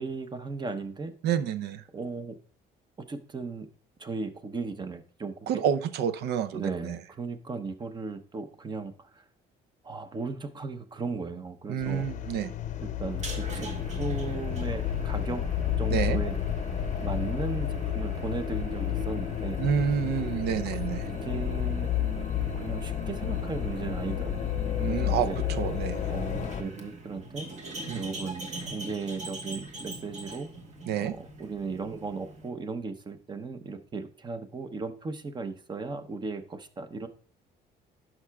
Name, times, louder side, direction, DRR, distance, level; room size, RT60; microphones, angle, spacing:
voice 1, 0.0-1.1 1.9-2.4 3.1-3.7 4.0-5.6 6.5-9.2 9.8-12.1 12.8-15.4 15.8-16.4 17.0-19.6 20.6-21.9 22.6-24.6 24.9-25.4 26.1-27.5 27.9-30.5 31.0-37.1, right 4 dB, 25° right, 10 dB, 0.8 m, -36 dB
voice 2, 1.2-1.8 5.5-7.0 11.7-12.5 15.9-16.2 19.6-21.1 24.8-26.1 27.9-28.0 30.9-31.1, right 8 dB, 75° right, 13 dB, 0.6 m, -29 dB
sound 1, 11.8-26.6, left 10 dB, 45° left, 0.6 m, -31 dB
sound 2, 13.1-32.5, right 2 dB, 45° right, 1.4 m, -42 dB
11.0 x 6.0 x 2.3 m, 0.43 s
cardioid pair, 110°, 17 cm